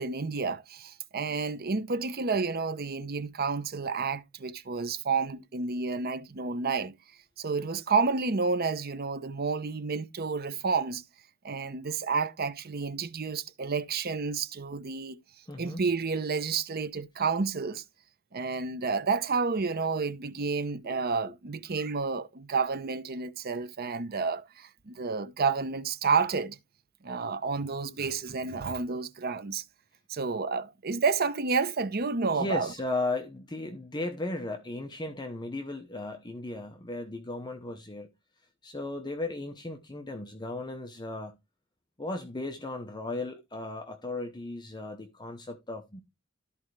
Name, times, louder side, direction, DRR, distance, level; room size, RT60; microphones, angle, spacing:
voice 1, 0.0-7.0 7.4-11.0 11.4-15.2 15.6-17.8 18.3-26.6 27.0-29.6 30.1-32.7, right 4 dB, 50° right, 0.8 m, -30 dB
voice 2, 15.5-15.8 20.8-21.0 32.3-38.1 38.6-41.4 42.0-46.0, left 2 dB, 20° left, 0.8 m, -36 dB
13.5 x 4.5 x 3.2 m
head